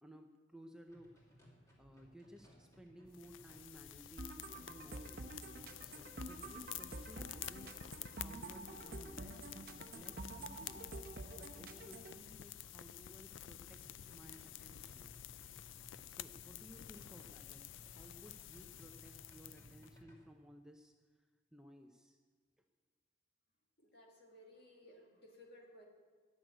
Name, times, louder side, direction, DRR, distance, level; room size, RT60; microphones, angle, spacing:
voice 1, 0.0-5.4 5.8-7.8 8.1-10.9 11.4-15.1 16.1-20.9 21.5-22.2, equal, 5° right, 3 dB, 0.6 m, -58 dB
sound 1, 0.9-20.1, equal, 15° left, 2.5 m, -63 dB
sound 2, 3.1-19.9, left 12 dB, 80° left, 0.4 m, -51 dB
sound 3, 4.2-12.2, right 2 dB, 50° right, 0.9 m, -49 dB
voice 2, 23.8-25.9, left 1 dB, 55° left, 0 dB, 2.3 m, -59 dB
14.0 x 6.4 x 9.1 m, 1.5 s
head